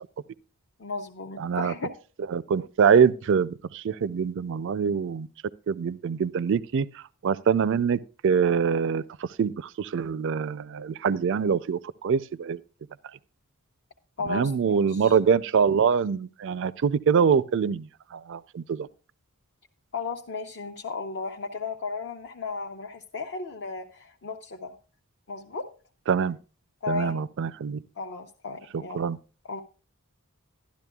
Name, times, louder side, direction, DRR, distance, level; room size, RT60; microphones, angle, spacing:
voice 1, 0.8-1.9 14.2-15.2 19.9-24.8 25.3-25.7 26.8-27.2 28.0-29.1 29.4-29.6, left 4 dB, 55° left, 0.7 m, -35 dB
voice 2, 1.4-1.7 2.3-5.3 5.7-6.9 7.2-9.0 9.4-12.6 14.3-18.9 26.1-26.4 26.9-27.8 28.9-29.2, right 6 dB, 55° right, 0.4 m, -24 dB
12.5 x 11.5 x 2.3 m
head